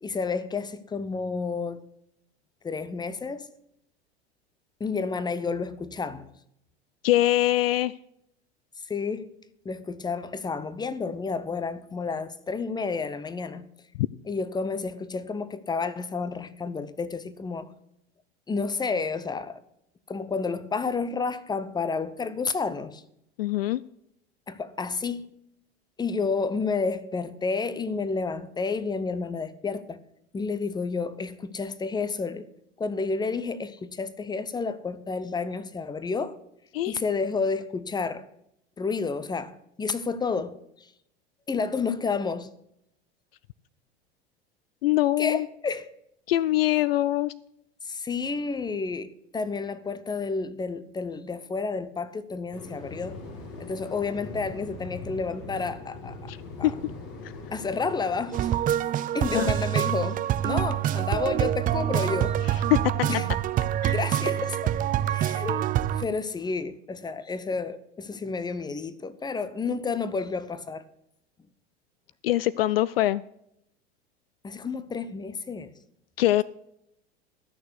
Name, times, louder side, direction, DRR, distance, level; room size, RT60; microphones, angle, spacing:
voice 1, 0.0-1.8 2.6-3.5 4.8-6.3 8.8-9.3 9.6-13.7 14.3-17.7 18.5-19.6 20.1-23.0 24.5-25.3 26.0-30.0 30.3-32.5 32.8-36.4 36.9-38.2 38.8-40.9 41.5-42.5 45.2-45.9 47.8-53.2 53.6-56.3 56.6-56.7 57.5-58.6 59.1-62.4 63.0-63.3 63.9-64.8 65.0-70.8 74.4-75.7, left 4 dB, 15° left, 0.9 m, -30 dB
voice 2, 7.0-7.9 14.0-14.1 23.4-23.8 36.7-37.0 44.8-45.5 46.3-47.3 56.3-56.4 56.6-56.7 59.3-59.5 62.7-62.9 63.8-63.9 72.2-73.2 76.2-76.4, left 15 dB, 65° left, 0.5 m, -23 dB
sound 1, 52.5-58.4, left 3 dB, 45° left, 2.8 m, -41 dB
sound 2, 58.3-66.0, right 12 dB, 25° right, 0.5 m, -26 dB
13.5 x 6.6 x 8.2 m
figure-of-eight pair, 80°, 32 cm